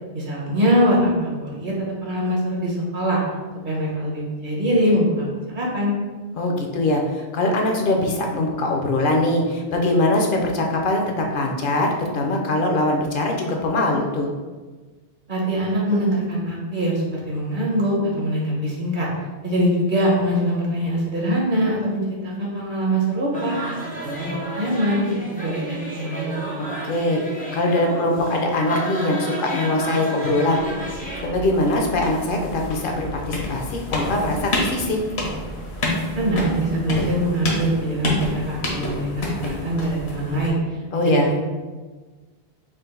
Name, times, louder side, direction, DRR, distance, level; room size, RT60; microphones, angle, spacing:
voice 1, 0.1-3.2 3.6-5.9 15.3-19.1 19.4-26.3 36.1-40.8 41.0-41.4, equal, 50° right, -4 dB, 1.0 m, -23 dB
voice 2, 6.4-14.3 26.6-30.6 31.0-35.0 40.9-41.3, left 1 dB, 60° left, 1 dB, 0.7 m, -22 dB
sound 1, 23.3-31.3, right 1 dB, 15° left, 0.4 m, -31 dB
sound 2, 30.5-40.5, left 2 dB, 80° left, 1.1 m, -29 dB
3.8 x 2.5 x 3.7 m, 1.3 s
omnidirectional pair, 1.1 m